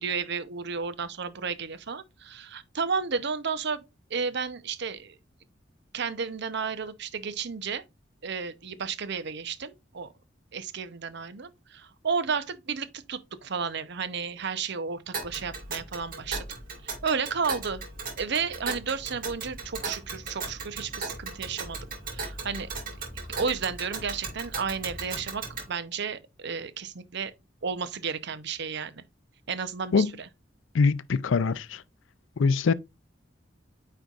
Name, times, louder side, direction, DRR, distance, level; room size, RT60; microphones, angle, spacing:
voice 1, 0.0-3.8 4.1-5.2 5.9-7.8 8.2-10.1 10.5-16.5 16.8-17.8 18.2-21.8 22.1-22.7 23.3-27.3 27.6-29.0 29.5-30.3, right 5 dB, 65° right, 0.8 m, -32 dB
Tick, 15.1-25.7, right 4 dB, 45° right, 2.3 m, -37 dB
voice 2, 30.7-31.8 32.4-32.7, left 4 dB, 80° left, 0.4 m, -23 dB
9.0 x 4.5 x 2.4 m
head